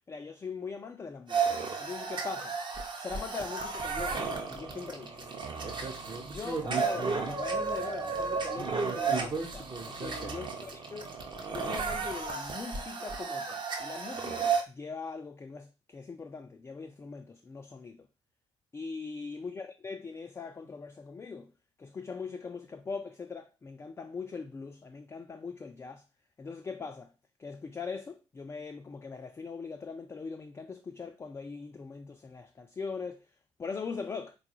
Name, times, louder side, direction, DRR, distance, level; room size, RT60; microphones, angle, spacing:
voice 1, 0.0-1.4 1.8-2.6 3.0-5.3 6.2-11.1 11.5-18.1 18.7-21.5 21.8-26.0 26.4-27.1 27.4-33.3 33.6-34.4, left 4 dB, 15° left, 0.3 m, -41 dB
sound 1, 1.3-14.6, right 5 dB, 30° right, 0.7 m, -33 dB
3.9 x 2.3 x 2.9 m
figure-of-eight pair, 45°, 15 cm